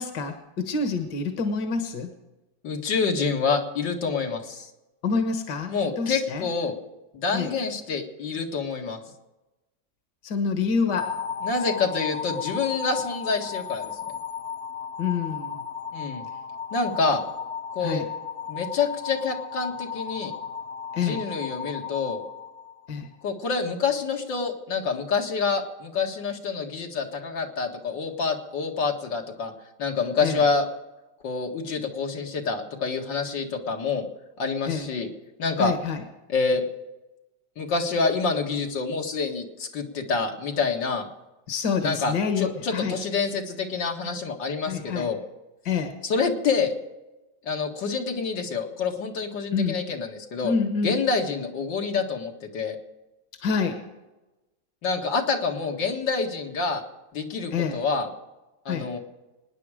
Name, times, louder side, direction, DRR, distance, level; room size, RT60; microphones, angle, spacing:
voice 1, 0.0-2.1 5.0-6.5 7.3-7.5 10.2-11.1 15.0-15.6 17.8-18.1 20.9-21.2 22.9-23.1 30.2-30.4 34.7-34.9 35.6-36.0 41.5-43.0 44.7-45.1 45.7-46.0 49.5-49.8 50.4-51.0 53.4-53.8 57.5-57.8 58.7-58.9, left 5 dB, 70° left, 6 dB, 2.0 m, -27 dB
voice 2, 2.6-4.7 5.7-6.7 7.1-9.0 11.4-14.1 15.9-16.3 16.7-17.2 17.7-18.0 18.5-20.3 21.0-22.2 23.2-29.5 29.8-30.7 31.2-34.1 34.4-35.1 35.4-35.7 36.3-36.6 37.6-41.1 41.8-45.2 46.0-46.7 47.4-50.5 50.8-52.8 54.8-56.8 57.1-58.1 58.7-59.0, left 4 dB, 90° left, 1 dB, 2.5 m, -27 dB
sound 1, 11.0-23.1, left 7 dB, 50° left, 0.6 m, -35 dB
25.0 x 10.0 x 5.0 m, 1.0 s
omnidirectional pair, 1.9 m